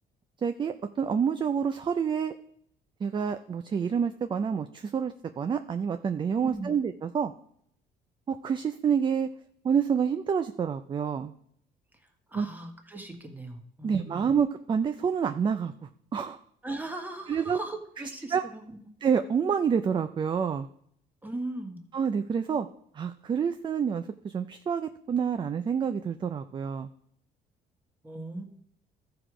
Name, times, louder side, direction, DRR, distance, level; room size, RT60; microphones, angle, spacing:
voice 1, 0.4-2.3 3.0-7.3 8.3-9.3 9.6-11.3 12.3-12.5 13.8-15.7 16.1-16.4 17.3-17.6 18.3-18.4 19.0-20.7 21.9-22.7 22.9-26.9, right 7 dB, 30° right, 9 dB, 0.4 m, -28 dB
voice 2, 12.3-14.3 16.6-18.8 21.2-21.8 28.0-28.5, right 2 dB, 10° right, 4 dB, 1.5 m, -38 dB
13.5 x 4.8 x 5.0 m, 0.68 s
cardioid pair, 110°, 17 cm